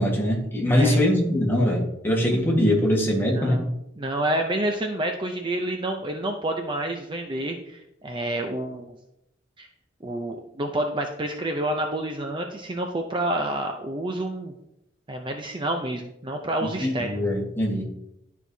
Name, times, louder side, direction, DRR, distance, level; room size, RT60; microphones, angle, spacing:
voice 1, 0.0-3.6 16.6-17.8, left 1 dB, 10° left, -2 dB, 1.5 m, -22 dB
voice 2, 3.1-3.7 4.0-9.0 9.6-9.7 10.0-14.5 15.1-17.1, right 1 dB, 25° right, 4 dB, 0.5 m, -29 dB
12.0 x 4.6 x 2.7 m, 0.83 s
head